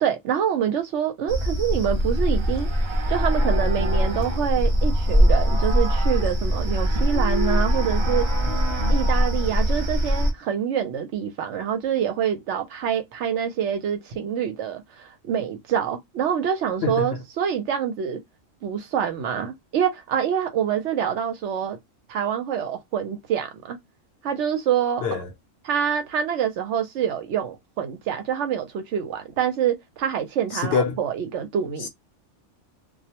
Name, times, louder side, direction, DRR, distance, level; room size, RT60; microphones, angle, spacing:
voice 1, 0.0-2.7 3.1-8.3 8.9-18.2 18.6-21.8 22.1-23.8 24.2-25.0 25.6-31.9, right 8 dB, 70° right, 0.9 m, -26 dB
sound 1, 1.3-10.3, equal, 50° right, 0.3 m, -22 dB
voice 2, 8.5-9.0 16.8-17.2 25.0-25.3 30.5-31.0 31.8-31.9, left 5 dB, 65° left, 0.7 m, -26 dB
2.3 x 2.0 x 2.8 m
omnidirectional pair, 1.3 m